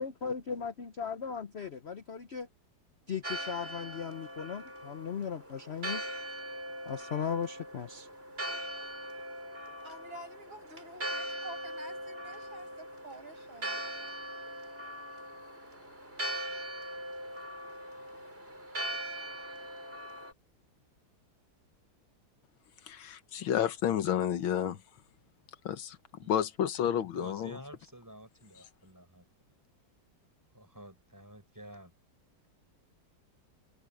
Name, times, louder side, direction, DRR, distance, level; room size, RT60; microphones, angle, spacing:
voice 1, 0.0-2.5 3.1-6.1 6.9-8.1, left 6 dB, 50° left, 0.7 m, -37 dB
Church bell, 3.2-20.3, right 1 dB, 30° right, 6.4 m, -41 dB
voice 2, 9.8-14.2, right 1 dB, 90° right, 8.5 m, -49 dB
voice 3, 22.9-24.8 25.7-26.0 26.3-27.6, left 9 dB, 85° left, 2.0 m, -30 dB
voice 4, 26.8-29.3 30.5-31.9, right 1 dB, 10° right, 5.3 m, -50 dB
omnidirectional pair, 2.1 m